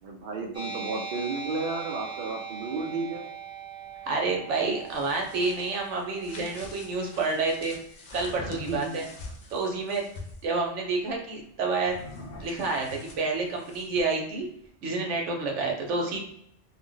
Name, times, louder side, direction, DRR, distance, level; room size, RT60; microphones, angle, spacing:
voice 1, 0.0-3.3 8.5-9.1 15.9-16.1, right 3 dB, 55° right, 1 dB, 0.6 m, -33 dB
sound 1, 0.5-7.6, right 6 dB, 5° right, 0.5 m, -41 dB
voice 2, 4.1-7.8 8.1-9.1 9.5-10.0 10.4-12.0 12.4-14.5 14.8-16.2, right 3 dB, 80° right, 1 dB, 1.0 m, -29 dB
sound 2, 4.7-10.4 11.8-14.1, left 2 dB, 55° left, 0.7 m, -44 dB
2.5 x 2.0 x 3.8 m, 0.69 s
omnidirectional pair, 1.2 m